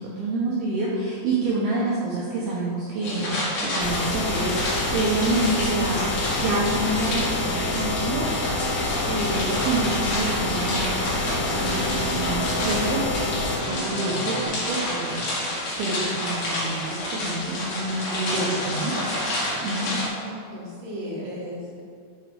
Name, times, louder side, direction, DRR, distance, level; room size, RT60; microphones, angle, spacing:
voice 1, 0.0-4.5 4.9-13.0 13.6-18.9 19.6-19.9, right 2 dB, 90° right, -6 dB, 2.1 m, -28 dB
sound 1, 3.0-20.1, left 1 dB, 50° left, 2.7 m, -29 dB
sound 2, 3.8-13.6, left 2 dB, 90° left, 3.6 m, -28 dB
sound 3, 6.2-14.4, left 1 dB, 70° left, 1.9 m, -33 dB
voice 2, 19.8-21.8, equal, 65° right, -5 dB, 3.1 m, -36 dB
7.2 x 6.0 x 4.9 m, 2.2 s
omnidirectional pair, 5.7 m